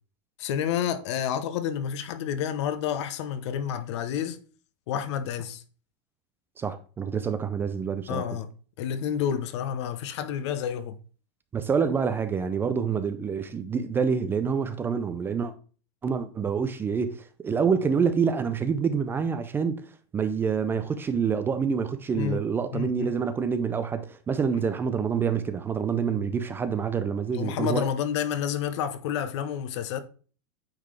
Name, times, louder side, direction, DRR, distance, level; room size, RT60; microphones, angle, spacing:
voice 1, 0.4-4.4 4.9-5.6 8.1-8.5 8.8-11.0 22.1-22.4 22.7-23.1 24.5-24.6 27.3-30.0, left 9 dB, 70° left, 0.9 m, -29 dB
voice 2, 6.6-8.3 11.5-15.5 16.0-19.8 20.1-27.9, right 6 dB, 15° right, 0.4 m, -27 dB
8.8 x 4.0 x 3.2 m
supercardioid pair, 150°, 16 cm